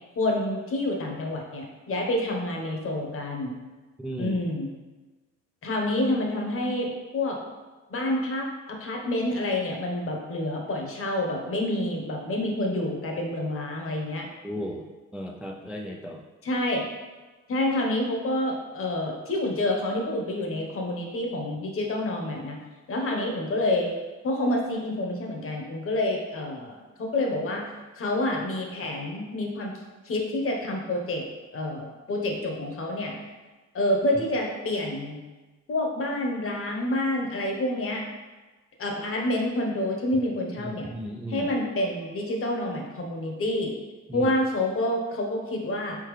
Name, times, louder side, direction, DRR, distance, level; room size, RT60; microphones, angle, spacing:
voice 1, 0.2-3.6 4.2-4.7 5.6-7.4 7.9-14.3 16.4-16.8 17.5-22.6 22.9-23.9 24.2-27.6 28.0-31.2 31.5-33.2 33.7-35.2 35.7-38.0 38.8-40.9 41.3-43.7 44.1-46.0, left 1 dB, 45° left, 0 dB, 1.0 m, -28 dB
voice 2, 4.0-4.4 14.4-14.9 15.1-16.2 40.6-41.5 44.1-44.3, equal, 5° right, 0 dB, 0.3 m, -35 dB
4.4 x 3.7 x 3.1 m, 1.2 s
cardioid pair, 90°, 30 cm